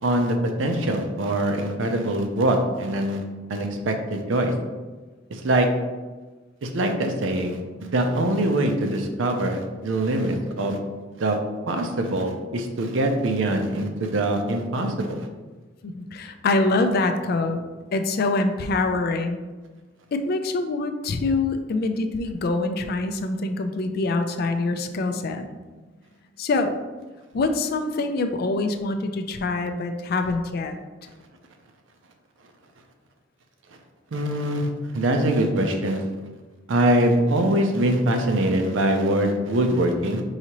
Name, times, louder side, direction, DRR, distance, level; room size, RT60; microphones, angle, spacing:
voice 1, 0.0-3.2 3.5-4.5 5.3-5.7 6.6-10.8 11.2-11.4 11.7-15.3 34.1-36.1 36.7-40.2, right 1 dB, 80° right, 4 dB, 0.5 m, -23 dB
voice 2, 15.8-17.6 17.9-19.4 20.1-25.5 26.4-26.8 27.3-30.8, left 3 dB, 50° left, 7 dB, 0.3 m, -25 dB
4.8 x 2.8 x 2.9 m, 1.3 s
head